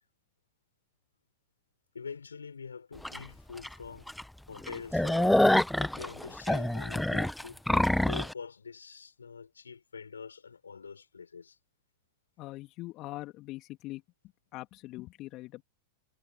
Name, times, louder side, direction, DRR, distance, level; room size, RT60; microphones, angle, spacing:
voice 1, 1.9-4.1 4.5-5.4 5.8-7.6 8.0-11.6, left 5 dB, 85° left, 6.4 m, -44 dB
sound 1, 3.0-3.2 3.6-3.7 4.1-4.2 4.6-8.3, left 1 dB, 5° left, 0.8 m, -26 dB
voice 2, 12.4-14.0 14.5-15.6, left 18 dB, 45° left, 2.6 m, -42 dB
hypercardioid pair, 95°, 0 cm